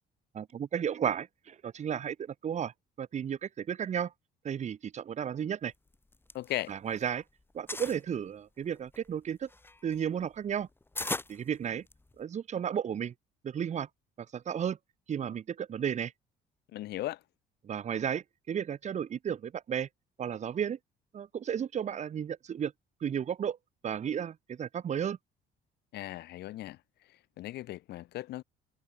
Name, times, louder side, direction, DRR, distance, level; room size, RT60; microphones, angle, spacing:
voice 1, 0.3-2.7 3.0-4.1 4.4-5.7 6.7-7.2 7.5-9.5 9.8-10.7 11.3-11.8 12.2-13.1 13.4-13.9 14.3-14.8 15.1-16.1 17.6-19.9 20.2-20.8 21.1-22.7 23.0-23.6 23.8-25.2, right 8 dB, 45° right, 1.8 m, -33 dB
sound 1, 5.9-7.1 7.4-8.0 8.6-12.2, left 2 dB, 15° left, 5.9 m, -39 dB
voice 2, 6.3-6.7 16.7-17.2 25.9-26.8 27.1-28.4, left 15 dB, 75° left, 5.6 m, -37 dB
cardioid pair, 110°, 17 cm